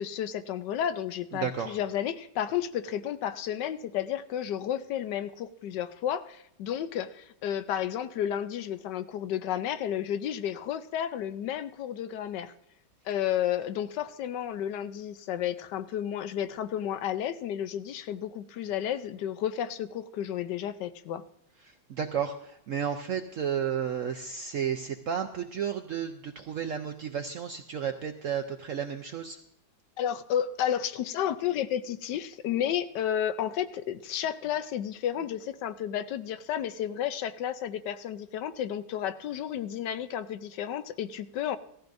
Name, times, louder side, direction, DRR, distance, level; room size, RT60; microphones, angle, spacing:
voice 1, 0.0-12.5 13.1-21.2 30.0-41.6, left 10 dB, 75° left, 12 dB, 1.2 m, -32 dB
voice 2, 1.3-1.8 21.6-29.4, right 8 dB, 70° right, 6 dB, 0.8 m, -32 dB
17.0 x 14.0 x 2.6 m, 0.75 s
omnidirectional pair, 2.0 m